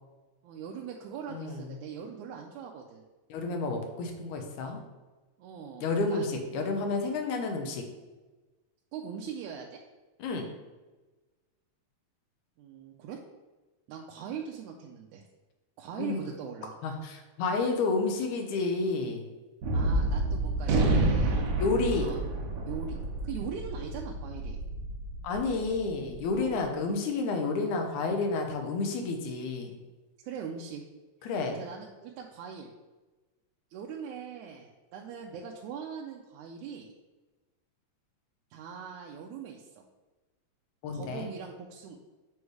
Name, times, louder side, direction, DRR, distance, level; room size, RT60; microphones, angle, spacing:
voice 1, 0.4-3.0 5.4-6.3 8.9-9.8 12.6-13.2 13.9-15.2 15.8-16.7 19.7-21.4 21.9-22.3 22.7-23.0 23.2-24.6 26.3-26.6 30.2-30.8 31.6-32.7 33.7-36.9 38.5-39.8 40.9-42.0, right 7 dB, 85° right, -1 dB, 2.0 m, -41 dB
voice 2, 1.3-1.7 3.3-4.8 5.8-7.8 10.2-10.5 16.0-16.2 16.8-19.3 21.6-22.1 25.2-29.8 31.2-31.6 40.8-41.3, left 3 dB, 85° left, 3 dB, 2.2 m, -30 dB
Gunshot gunfire, 19.6-26.2, right 2 dB, 65° right, 1.9 m, -29 dB
7.0 x 3.2 x 4.8 m, 1.2 s
omnidirectional pair, 3.4 m